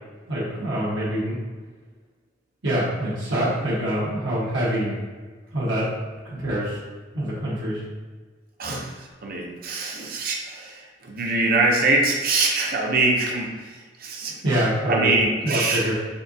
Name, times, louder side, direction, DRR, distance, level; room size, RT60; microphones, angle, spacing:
voice 1, 0.3-1.4 2.6-5.0 5.5-5.9 6.2-6.8 7.1-7.8 14.4-15.1 15.4-15.9, equal, 70° right, -8 dB, 1.3 m, -25 dB
voice 2, 8.6-14.4 14.9-15.9, right 3 dB, 50° right, 0 dB, 0.7 m, -24 dB
4.4 x 3.7 x 2.7 m, 1.4 s
head